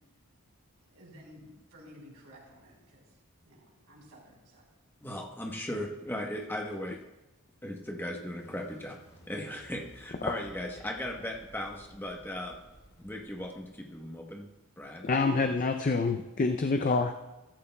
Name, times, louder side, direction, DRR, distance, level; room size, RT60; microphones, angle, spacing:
voice 1, 0.9-3.0 3.4-4.7, equal, 90° right, -2 dB, 4.5 m, -53 dB
voice 2, 5.0-7.0 7.6-9.0 9.3-12.6 13.0-14.5 14.8-15.1 15.3-15.5, left 1 dB, 10° left, 1 dB, 1.0 m, -37 dB
sound 1, 8.4-14.5, equal, 60° left, 3.7 m, -56 dB
voice 3, 15.0-17.1, left 3 dB, 35° left, 6 dB, 0.4 m, -27 dB
15.0 x 13.5 x 2.3 m, 1.0 s
head